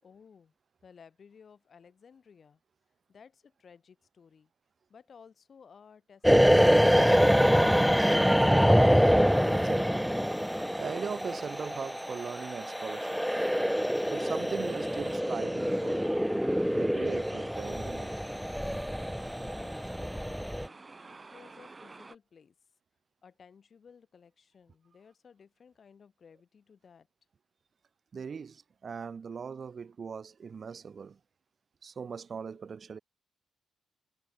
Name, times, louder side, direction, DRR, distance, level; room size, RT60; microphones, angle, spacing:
voice 1, 0.0-0.5 0.8-2.6 3.1-4.5 4.9-6.9 19.5-22.5 23.2-27.1, left 6 dB, 55° left, 6.3 m, -57 dB
sound 1, 6.2-20.7, equal, ahead, 0.8 m, -25 dB
sound 2, 9.3-22.2, right 3 dB, 30° right, 7.4 m, -51 dB
voice 2, 9.5-13.2 14.1-16.1 16.7-18.1 21.0-21.3 28.1-31.2 31.8-33.0, right 6 dB, 50° right, 1.4 m, -40 dB
hypercardioid pair, 45°, 0 cm